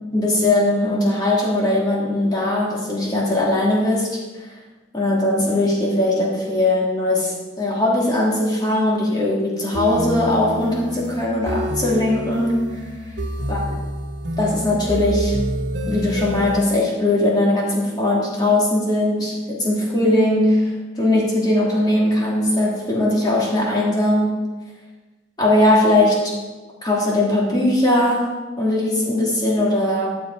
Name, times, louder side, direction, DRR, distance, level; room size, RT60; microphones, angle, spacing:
voice 1, 0.1-4.2 4.9-12.7 13.5-13.6 14.4-15.4 15.9-24.4 25.4-26.3 26.8-28.3 28.6-30.2, left 1 dB, 25° left, -4 dB, 2.6 m, -19 dB
sound 1, 9.7-16.6, right 1 dB, 75° right, 1.2 m, -27 dB
11.5 x 6.7 x 4.7 m, 1.2 s
head